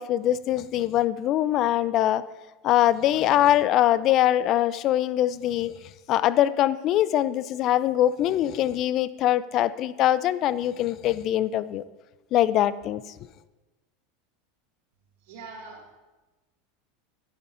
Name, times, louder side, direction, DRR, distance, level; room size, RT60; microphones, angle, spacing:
voice 1, 0.0-2.2 2.6-5.7 6.1-11.8 12.3-13.0, left 12 dB, 50° left, 16 dB, 0.4 m, -23 dB
voice 2, 15.2-15.9, right 4 dB, 70° right, 0 dB, 2.2 m, -43 dB
11.5 x 9.5 x 2.6 m, 1.1 s
hypercardioid pair, 90°, 0 cm